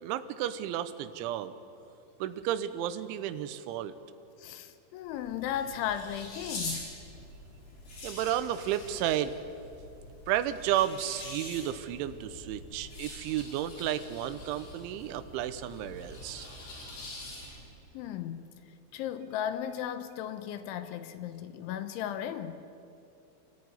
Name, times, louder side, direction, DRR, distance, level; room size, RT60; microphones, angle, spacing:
voice 1, 0.0-1.5 2.2-3.9 8.0-9.3 10.3-16.5, right 11 dB, 85° right, 12 dB, 3.3 m, -32 dB
voice 2, 4.4-6.9 17.9-18.5 18.9-22.5, left 10 dB, 90° left, 10 dB, 3.4 m, -36 dB
sound 1, 5.0-17.8, left 2 dB, 55° left, 6.2 m, -45 dB
27.0 x 14.0 x 9.6 m, 2.6 s
omnidirectional pair, 5.5 m